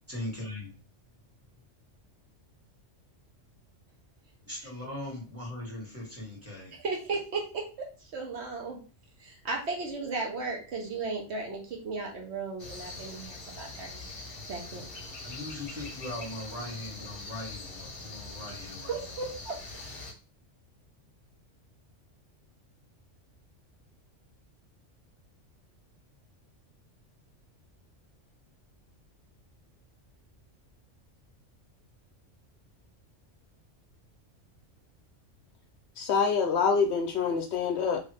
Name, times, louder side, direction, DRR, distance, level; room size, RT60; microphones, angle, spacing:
voice 1, 0.1-0.7 4.4-6.8 15.2-19.2, left 1 dB, 10° right, -4 dB, 1.3 m, -40 dB
voice 2, 6.8-7.6 8.1-8.8 9.2-14.0 14.5-14.8 18.9-19.6, right 3 dB, 65° right, 0 dB, 1.1 m, -35 dB
sound 1, 12.6-20.1, left 3 dB, 30° left, 0.7 m, -43 dB
voice 3, 36.0-38.0, left 5 dB, 70° left, 3 dB, 0.8 m, -26 dB
2.9 x 2.5 x 3.3 m, 0.35 s
omnidirectional pair, 1.3 m